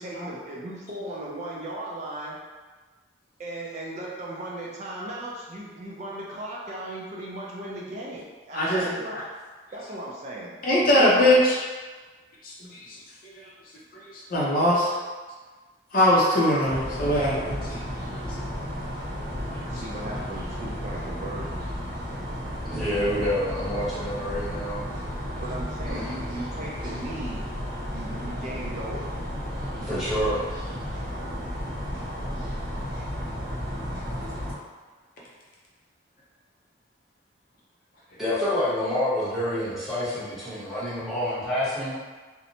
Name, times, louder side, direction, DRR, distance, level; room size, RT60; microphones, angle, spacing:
voice 1, 0.0-2.4 3.4-9.2 9.7-11.3 19.7-21.7 25.4-27.4 27.9-29.1, right 1 dB, 35° right, -4 dB, 0.3 m, -37 dB
voice 2, 8.5-9.2 10.6-11.6 12.4-13.0 13.2-13.5 13.9-14.9 15.9-17.8, left 1 dB, 50° left, -5 dB, 0.5 m, -22 dB
sound 1, 16.6-34.5, equal, 55° right, 0.9 m, -33 dB
voice 3, 22.6-24.9 25.9-26.1 29.8-30.4 38.2-41.9, left 1 dB, ahead, -12 dB, 0.9 m, -28 dB
2.8 x 2.0 x 2.6 m, 1.4 s
head